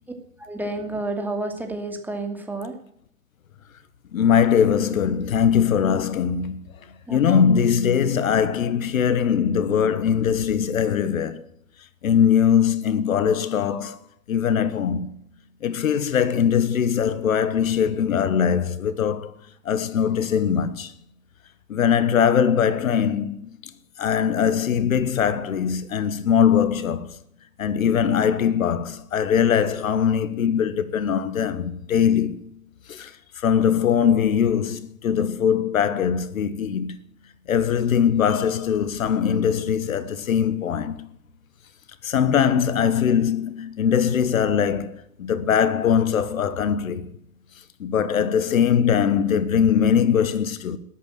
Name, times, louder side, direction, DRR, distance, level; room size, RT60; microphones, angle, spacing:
voice 1, 0.4-2.7 7.1-7.5, right 2 dB, 5° right, 2.5 m, -30 dB
voice 2, 4.1-6.6 7.1-11.4 12.0-14.0 14.3-15.1 15.6-19.3 19.6-20.9 21.7-23.5 24.0-27.1 27.6-32.5 32.9-33.1 33.4-37.0 37.5-41.1 42.0-47.1 47.8-50.8, left 8 dB, 70° left, 1.3 m, -21 dB
19.5 x 8.6 x 7.3 m
figure-of-eight pair, 110°, 42 cm